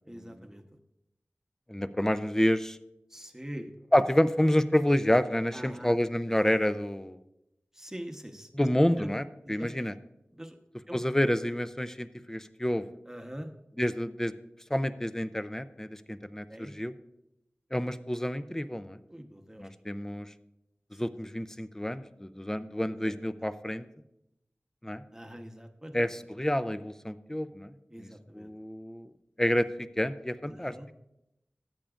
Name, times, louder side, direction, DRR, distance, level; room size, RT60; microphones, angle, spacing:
voice 1, 0.0-0.6 3.1-3.7 5.5-6.0 7.7-8.7 9.0-9.1 9.4-9.7 10.3-10.6 10.9-11.0 13.1-13.5 16.5-16.7 19.1-19.7 23.0-23.5 25.1-25.9 27.9-28.5 30.4-30.8, equal, 10° right, 4 dB, 1.0 m, -43 dB
voice 2, 1.7-2.8 3.9-7.2 8.5-9.9 10.9-12.8 13.8-14.3 14.7-16.9 17.7-19.0 19.6-20.3 21.0-23.8 24.8-25.0 25.9-27.7 28.0-28.1 28.3-29.1 29.4-29.7 30.0-30.7, left 1 dB, 10° left, 13 dB, 0.5 m, -28 dB
13.5 x 8.8 x 2.5 m, 0.86 s
wide cardioid pair, 65°, 4 cm